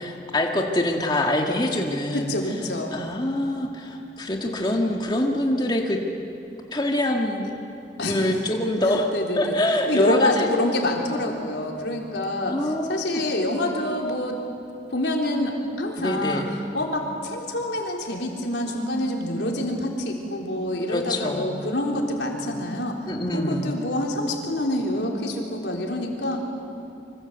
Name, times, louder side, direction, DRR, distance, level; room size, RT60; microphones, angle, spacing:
voice 1, 0.0-2.3 2.9-6.0 6.7-7.5 8.0-9.1 9.4-10.5 12.2-13.2 16.0-16.5 20.9-21.5 23.1-23.7, left 1 dB, 25° left, 1 dB, 1.9 m, -25 dB
voice 2, 2.1-2.9 8.0-8.2 8.9-9.6 9.9-14.4 14.9-26.4, left 1 dB, 80° left, 1 dB, 3.9 m, -27 dB
26.5 x 25.0 x 8.1 m, 2.6 s
head